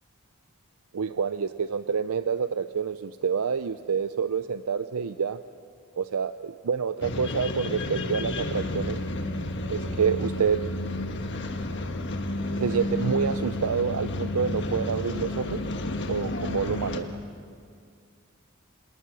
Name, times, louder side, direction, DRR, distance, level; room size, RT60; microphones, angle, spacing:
voice 1, 0.9-5.4 6.0-9.0 9.7-10.6 12.6-15.6 16.1-17.1, right 6 dB, 80° right, 11 dB, 0.5 m, -27 dB
sound 1, 7.0-17.0, left 1 dB, 55° left, 1.5 m, -31 dB
27.5 x 19.5 x 6.2 m, 2.3 s
head